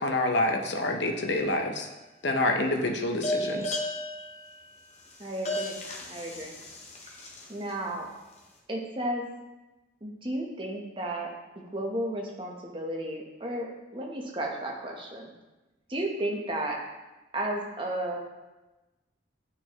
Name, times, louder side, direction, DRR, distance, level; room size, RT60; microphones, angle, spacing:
voice 1, 0.0-1.9 2.2-3.8, left 2 dB, 65° left, 4 dB, 0.7 m, -27 dB
sound 1, 1.2-1.8 3.2-7.7, left 1 dB, 35° left, 0.8 m, -35 dB
voice 2, 5.2-5.8 6.1-6.5 7.5-8.1 8.7-9.3 10.0-11.3 11.7-15.3 15.9-16.8 17.3-18.2, right 1 dB, 25° right, 0 dB, 0.8 m, -33 dB
8.7 x 4.2 x 2.9 m, 1.1 s
head